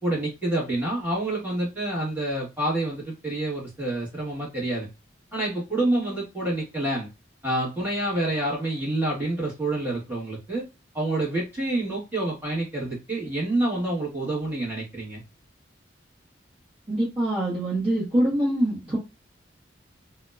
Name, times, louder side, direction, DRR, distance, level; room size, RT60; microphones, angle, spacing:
voice 1, 0.0-4.9 5.3-7.1 7.4-10.7 10.9-15.2, right 1 dB, 10° right, -6 dB, 1.3 m, -27 dB
voice 2, 16.9-19.0, right 1 dB, 30° right, -7 dB, 0.8 m, -24 dB
2.8 x 2.1 x 2.3 m, 0.26 s
head